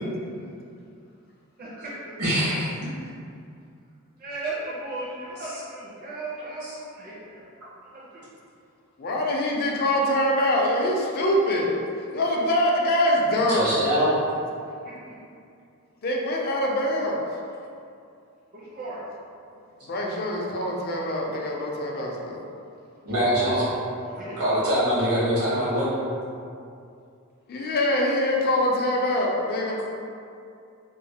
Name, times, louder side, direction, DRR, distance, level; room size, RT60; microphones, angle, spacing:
voice 1, 1.6-2.4 4.2-7.4 7.9-8.2 15.0-15.1 18.5-19.0 24.0-24.7, right 2 dB, 40° right, -7 dB, 0.5 m, -36 dB
voice 2, 2.2-2.9 13.5-14.1 23.0-23.6 24.4-25.9, equal, 85° right, -10 dB, 1.3 m, -23 dB
voice 3, 9.0-11.7 12.1-13.8 16.0-17.2 19.9-22.4 27.5-29.8, left 1 dB, 45° left, -1 dB, 0.4 m, -24 dB
3.0 x 2.1 x 2.7 m, 2.5 s
head